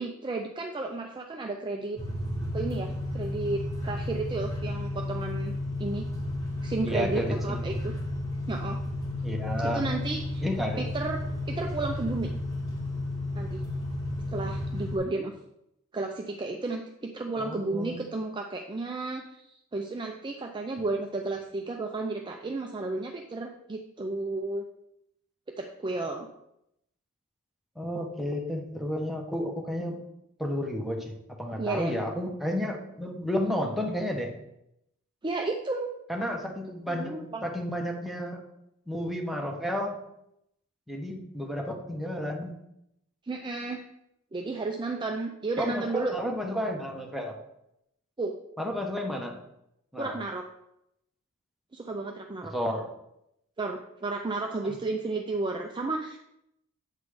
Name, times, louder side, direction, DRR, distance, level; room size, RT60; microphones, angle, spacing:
voice 1, 0.0-2.0 2.5-5.5 5.8-6.1 6.6-7.9 8.5-8.8 9.6-10.4 10.8-11.2 11.5-12.3 13.3-13.6 14.3-15.3 15.9-24.7 25.6-26.3 31.6-31.9 35.2-35.9 36.9-37.4 43.2-43.8 44.3-46.1 48.2-48.3 50.0-50.4 51.7-52.5 53.6-56.2, right 3 dB, 20° right, 2 dB, 0.5 m, -33 dB
sound 1, 2.0-15.0, left 1 dB, 30° left, 2.1 m, -33 dB
voice 2, 6.8-7.6 9.2-9.8 10.4-10.9 17.4-18.0 27.8-30.0 30.4-31.1 31.4-34.3 36.1-38.4 38.9-40.0 40.9-42.5 45.6-47.4 48.6-49.3 49.9-50.2 52.5-52.9 54.6-54.7, equal, ahead, 0 dB, 1.0 m, -31 dB
8.2 x 4.1 x 4.9 m, 0.81 s
head